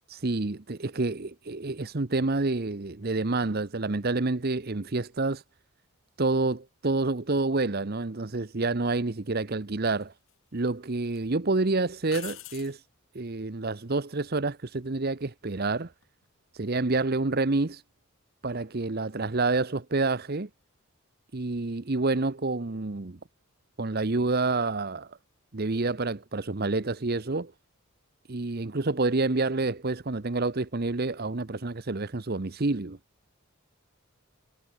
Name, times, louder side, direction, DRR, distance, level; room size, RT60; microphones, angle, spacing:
voice 1, 0.1-5.4 6.2-10.1 10.5-12.8 13.1-15.9 16.5-17.8 18.4-20.5 21.3-23.2 23.8-25.2 25.5-27.5 28.3-33.0, right 3 dB, 45° right, 0.9 m, -28 dB
sound 1, 10.0-10.6 11.0-11.2 12.1-12.8 15.9-16.3, left 12 dB, 65° left, 5.5 m, -44 dB
head